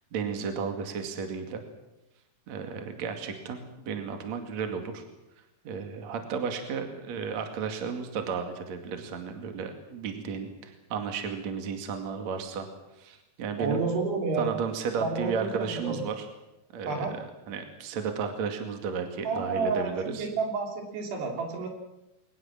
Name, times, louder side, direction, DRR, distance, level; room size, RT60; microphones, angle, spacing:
voice 1, 0.1-1.6 2.5-5.0 5.6-12.7 13.0-13.8 14.4-16.2 16.7-20.3, right 6 dB, 45° right, 5 dB, 3.2 m, -33 dB
voice 2, 13.6-14.5 15.0-16.0 16.9-17.1 19.3-19.9 20.2-21.7, right 4 dB, 80° right, 2 dB, 5.4 m, -30 dB
22.5 x 20.0 x 7.6 m, 0.96 s
omnidirectional pair, 4.7 m